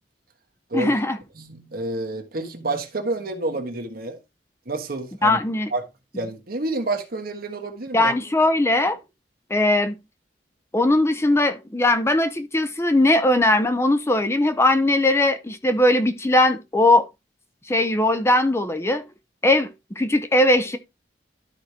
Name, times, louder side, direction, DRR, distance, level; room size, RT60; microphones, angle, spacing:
voice 1, 0.7-1.2 5.2-5.7 7.9-9.0 9.5-10.0 10.7-17.1 17.7-19.0 19.4-19.7 20.0-20.8, left 1 dB, 15° left, 0.6 m, -19 dB
voice 2, 1.4-4.2 4.7-5.4 5.7-5.8 6.1-8.1, right 2 dB, 55° right, 1.4 m, -29 dB
12.5 x 4.7 x 2.8 m
head